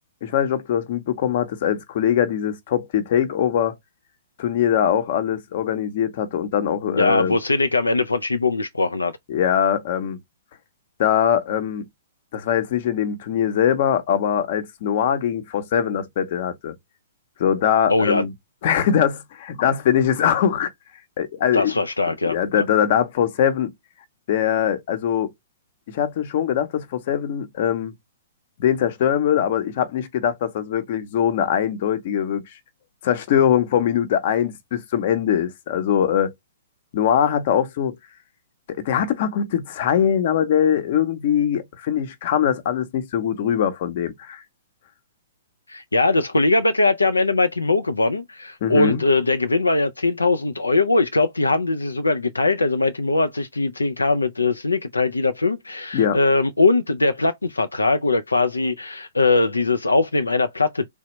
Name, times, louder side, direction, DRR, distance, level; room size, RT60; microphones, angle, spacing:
voice 1, 0.2-3.8 4.4-7.4 9.3-10.2 11.0-11.8 12.3-16.7 17.4-18.3 18.6-20.7 21.2-21.7 22.3-23.7 24.3-25.3 25.9-27.9 28.6-32.4 33.0-36.3 36.9-38.0 38.7-44.4 48.6-49.0 55.9-56.2, left 9 dB, 50° left, 0.8 m, -22 dB
voice 2, 6.9-9.1 17.9-18.2 21.5-22.6 45.7-60.9, left 3 dB, 90° left, 0.4 m, -21 dB
3.2 x 2.1 x 3.0 m
figure-of-eight pair, 120°, 0 cm